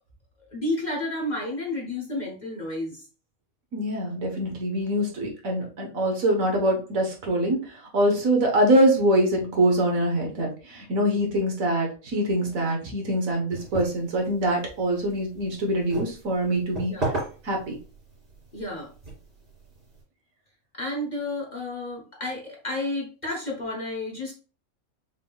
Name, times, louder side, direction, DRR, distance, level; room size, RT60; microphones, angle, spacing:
voice 1, 0.5-3.0 16.9-17.1 18.5-18.9 20.7-24.3, left 1 dB, 35° left, -1 dB, 1.0 m, -31 dB
voice 2, 3.7-17.1 17.4-17.8, right 1 dB, 70° right, 1 dB, 1.6 m, -24 dB
sound 1, 13.5-20.0, right 2 dB, 40° right, 2.3 m, -37 dB
5.9 x 3.6 x 2.3 m, 0.36 s
omnidirectional pair, 1.5 m